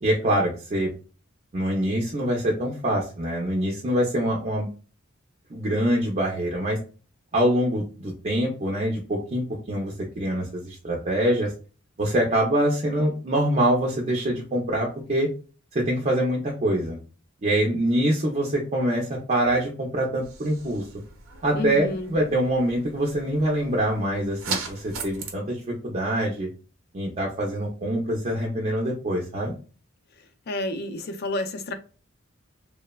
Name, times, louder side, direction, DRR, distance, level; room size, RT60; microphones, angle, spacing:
voice 1, 0.0-0.9 1.5-4.7 5.5-6.8 7.3-11.5 12.0-15.3 15.7-17.0 17.4-20.9 21.4-26.5 26.9-29.5, right 1 dB, 35° right, 0.5 m, -25 dB
sound 1, 20.2-25.3, right 4 dB, 80° right, 0.7 m, -38 dB
voice 2, 21.5-22.1 30.5-31.7, left 1 dB, 50° left, 0.4 m, -30 dB
3.1 x 2.0 x 2.2 m
head